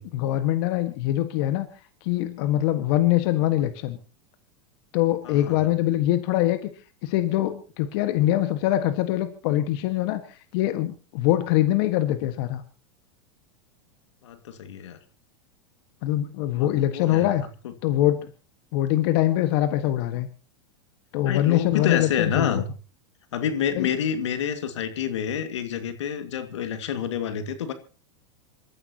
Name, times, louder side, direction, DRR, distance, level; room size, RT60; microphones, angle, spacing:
voice 1, 0.0-1.7 2.0-4.0 4.9-6.7 7.0-12.6 16.0-17.4 17.8-18.3 18.7-20.3 21.1-22.6 23.8-23.9, left 14 dB, 60° left, 9 dB, 1.7 m, -23 dB
voice 2, 5.2-5.7 14.2-15.0 16.5-17.3 17.6-17.7 21.2-22.7 23.3-27.7, left 8 dB, 80° left, 9 dB, 2.1 m, -28 dB
27.5 x 14.0 x 3.0 m, 0.34 s
hypercardioid pair, 100°, 15 cm